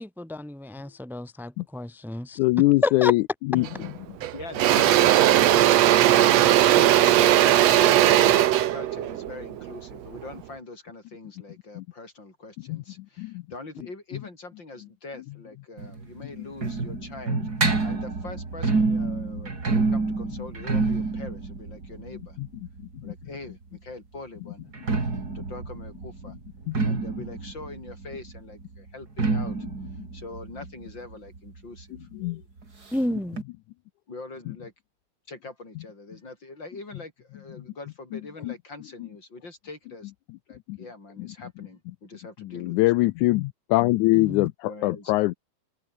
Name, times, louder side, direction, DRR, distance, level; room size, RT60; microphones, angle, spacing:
voice 1, 0.0-2.4 2.8-3.1 32.9-33.4 44.1-44.5, left 2 dB, ahead, 3.2 m, -30 dB
voice 2, 2.4-3.2 3.5-3.7 11.8-11.9 12.7-12.8 13.2-13.4 22.4-22.5 23.0-23.1 26.7-26.8 32.2-32.4 38.4-38.5 40.7-40.8 41.2-41.3 42.5-45.3, left 20 dB, 80° left, 1.8 m, -22 dB
Engine / Drill, 3.6-3.9 4.2-10.3, right 12 dB, 65° right, 1.9 m, -18 dB
voice 3, 4.3-22.4 23.0-24.7 25.3-26.4 26.8-29.6 30.1-32.1 34.1-34.7 35.3-40.1 40.5-43.1 44.7-45.1, left 3 dB, 30° left, 6.4 m, -43 dB
sound 1, 15.8-23.5 24.6-32.0 32.3-32.4 32.6-32.7 33.4-33.5, right 3 dB, 30° right, 3.8 m, -28 dB
open air
omnidirectional pair, 3.9 m